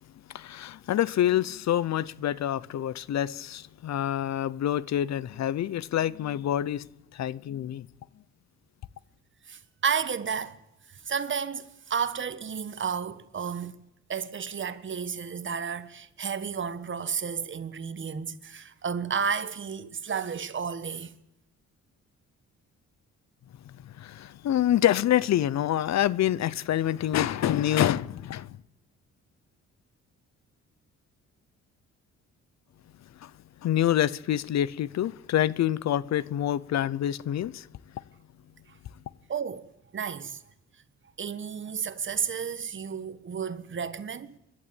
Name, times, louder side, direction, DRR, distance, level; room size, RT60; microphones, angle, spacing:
voice 1, 0.3-6.9 7.1-7.9 23.8-28.6 33.2-33.3 33.6-37.7 37.9-38.0, left 11 dB, 65° left, 0.8 m, -27 dB
voice 2, 9.5-10.6 10.9-13.8 14.1-21.1 38.7-38.8 39.3-40.4 41.2-44.4, right 6 dB, 40° right, 1.4 m, -32 dB
27.5 x 12.0 x 9.0 m
cardioid pair, 90°, 30 cm